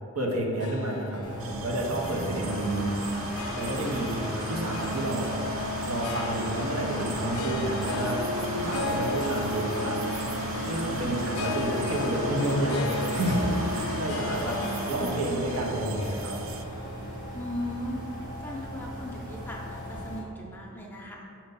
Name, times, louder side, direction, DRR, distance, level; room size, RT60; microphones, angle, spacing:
voice 1, 0.1-2.9 3.6-5.3 5.8-8.2 8.5-10.0 10.7-13.4 13.7-16.4, right 1 dB, 90° right, -1 dB, 1.0 m, -30 dB
Harp, 0.5-19.0, left 2 dB, 80° left, 0.4 m, -37 dB
sound 1, 1.2-20.2, equal, 35° right, 1.3 m, -34 dB
sound 2, 1.4-16.6, right 8 dB, 60° right, 0.3 m, -44 dB
voice 2, 17.3-18.0 18.4-21.2, left 1 dB, 10° left, -2 dB, 0.6 m, -37 dB
6.7 x 2.9 x 5.4 m, 2.7 s
head